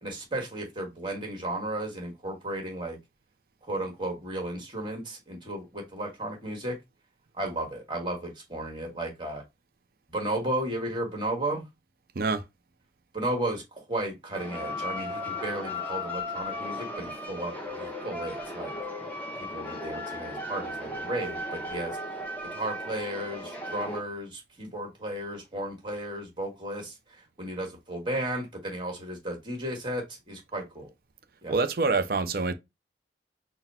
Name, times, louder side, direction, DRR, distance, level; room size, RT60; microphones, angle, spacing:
voice 1, 0.0-3.0 3.7-6.8 7.4-9.4 10.1-11.6 13.1-18.7 19.4-22.0 22.5-27.0 27.4-30.9 31.4-31.5, right 1 dB, 25° right, 1.5 m, -34 dB
sound 1, 14.3-24.0, left 1 dB, 10° left, 1.0 m, -36 dB
voice 2, 31.5-32.5, right 4 dB, 55° right, 0.5 m, -26 dB
4.0 x 2.1 x 4.2 m
head